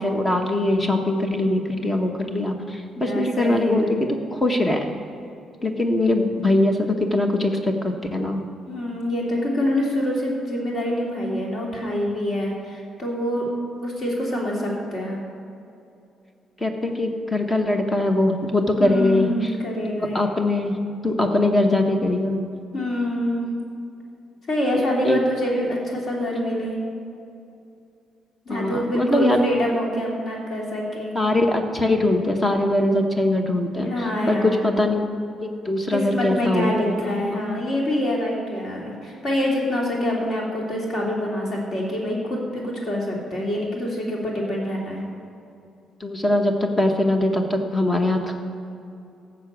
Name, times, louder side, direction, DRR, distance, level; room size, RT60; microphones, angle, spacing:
voice 1, 0.0-4.9 5.6-8.4 16.6-19.5 20.1-22.5 24.8-25.2 28.5-29.4 31.1-33.9 34.3-35.0 35.4-37.0 37.3-37.4 46.0-48.3, left 1 dB, 15° left, 4 dB, 1.0 m, -22 dB
voice 2, 3.0-4.0 8.7-13.5 13.8-15.2 18.8-20.3 22.7-23.5 24.5-26.8 28.5-31.2 33.8-34.7 35.9-45.0, left 1 dB, 40° left, -3 dB, 2.8 m, -26 dB
14.0 x 6.1 x 8.0 m, 2.6 s
cardioid pair, 170°, 0 cm